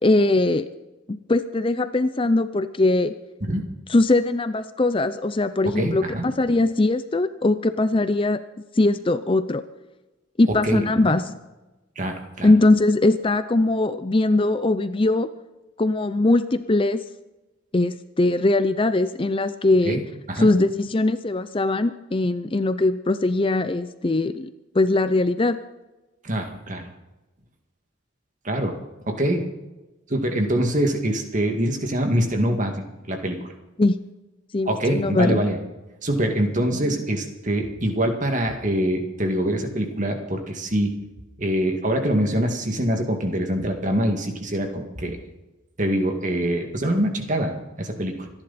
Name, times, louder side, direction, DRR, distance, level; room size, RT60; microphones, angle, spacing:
voice 1, 0.0-0.7 1.1-3.1 3.9-8.4 8.7-9.6 10.4-11.4 12.4-15.3 15.8-17.0 17.7-20.0 20.4-24.5 24.7-25.6 33.8-34.0 34.5-35.4, left 2 dB, 25° left, 12 dB, 0.5 m, -21 dB
voice 2, 5.8-6.3 10.6-10.8 12.0-12.5 19.9-20.0 20.3-20.5 26.2-26.8 28.4-28.7 29.1-29.5 30.1-33.5 34.7-35.6 36.0-40.9 41.4-45.2 45.8-47.5 47.8-48.3, right 1 dB, 40° right, 4 dB, 2.1 m, -24 dB
26.0 x 11.0 x 4.2 m, 1.1 s
head